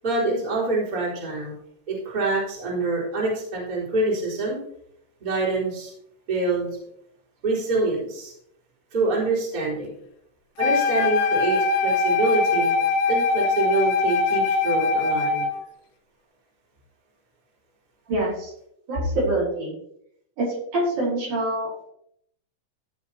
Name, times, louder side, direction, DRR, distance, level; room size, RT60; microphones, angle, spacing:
voice 1, 0.0-1.5 1.9-4.6 5.2-5.9 6.3-6.7 7.4-8.3 8.9-9.9 10.6-12.7 13.1-15.5, right 3 dB, 25° right, -7 dB, 4.1 m, -26 dB
Wind instrument woodwind instrument, 10.6-15.6, left 4 dB, 85° left, 1.4 m, -22 dB
voice 2, 18.1-18.5 18.9-19.7 20.4-21.9, right 1 dB, 60° right, -6 dB, 5.5 m, -25 dB
15.0 x 6.9 x 2.9 m, 0.72 s
omnidirectional pair, 4.0 m